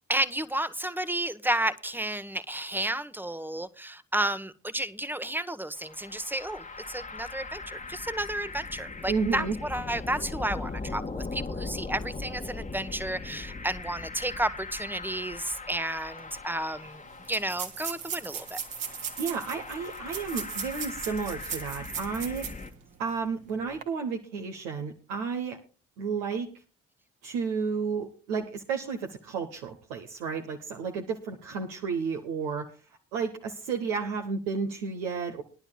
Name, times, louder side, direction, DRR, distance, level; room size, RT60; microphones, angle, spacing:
voice 1, 0.1-17.0 17.3-18.6, right 1 dB, 5° right, 1.0 m, -32 dB
sound 1, 5.8-22.7, left 3 dB, 20° left, 1.3 m, -40 dB
voice 2, 9.1-9.5 19.2-22.5 23.0-25.6 26.0-26.5 27.2-32.7 33.1-35.4, right 5 dB, 80° right, 1.1 m, -32 dB
sound 2, 16.2-16.3 16.5-16.6 17.2-22.7 23.1-23.2 23.7-23.8, right 7 dB, 60° right, 1.9 m, -37 dB
21.5 x 11.5 x 2.2 m
figure-of-eight pair, 40°, 37 cm